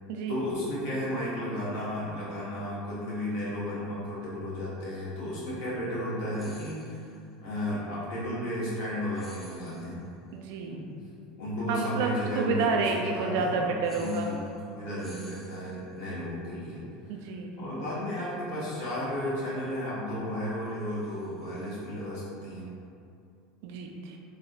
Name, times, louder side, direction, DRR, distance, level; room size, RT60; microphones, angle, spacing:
voice 1, 0.3-7.1 7.4-10.0 10.6-10.9 11.4-13.7 14.0-16.8 17.6-22.7, equal, 60° left, -8 dB, 1.1 m, -33 dB
sound 1, 6.3-7.2 9.1-10.1 13.8-14.7 15.0-16.0 20.6-22.0, left 1 dB, 20° left, 0.7 m, -54 dB
voice 2, 10.3-10.8 11.7-14.3 17.1-17.8 23.6-24.2, right 4 dB, 60° right, 2 dB, 0.3 m, -30 dB
3.3 x 2.2 x 2.6 m, 2.4 s
figure-of-eight pair, 80°, 0 cm